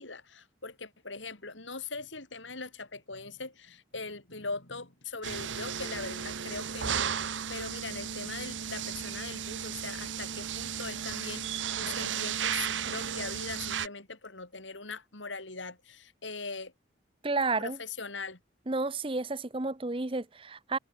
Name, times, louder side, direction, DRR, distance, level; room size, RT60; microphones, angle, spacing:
voice 1, 0.0-16.7 17.6-18.4, left 4 dB, 80° left, 5.7 m, -41 dB
sound 1, 5.2-13.9, right 8 dB, 80° right, 1.0 m, -34 dB
voice 2, 17.2-17.8 18.7-20.8, right 3 dB, 30° right, 0.9 m, -31 dB
open air
head